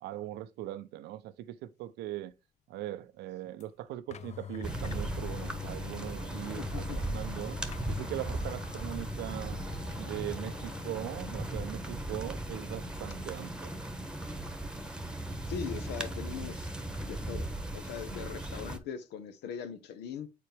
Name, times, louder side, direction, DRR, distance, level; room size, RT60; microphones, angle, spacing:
voice 1, 0.0-2.3 2.7-7.6 7.9-9.6 10.0-13.7, right 14 dB, 75° right, 0.6 m, -40 dB
sound 1, 3.6-3.7 4.1-11.7 12.1-12.2 14.7-17.3, left 9 dB, 40° left, 0.4 m, -46 dB
sound 2, 4.6-18.8, right 1 dB, 5° right, 1.2 m, -37 dB
voice 2, 6.6-7.0 15.5-16.7 17.0-20.3, left 8 dB, 75° left, 0.9 m, -40 dB
6.8 x 4.3 x 3.4 m
supercardioid pair, 65°, 17 cm